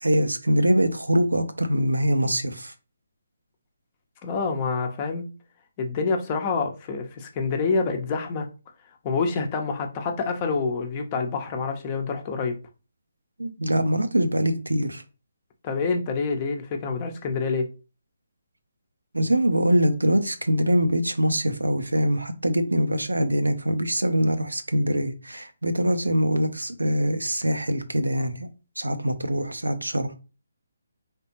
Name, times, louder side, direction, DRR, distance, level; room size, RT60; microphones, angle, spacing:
voice 1, 0.0-2.7 13.4-15.0 19.1-28.5 28.8-30.1, equal, 90° right, 0.6 m, -23 dB
voice 2, 4.2-5.2 5.8-8.5 9.0-12.5 15.6-17.7, left 4 dB, 30° left, 0.8 m, -27 dB
4.2 x 3.3 x 2.9 m
figure-of-eight pair, 145°, 0 cm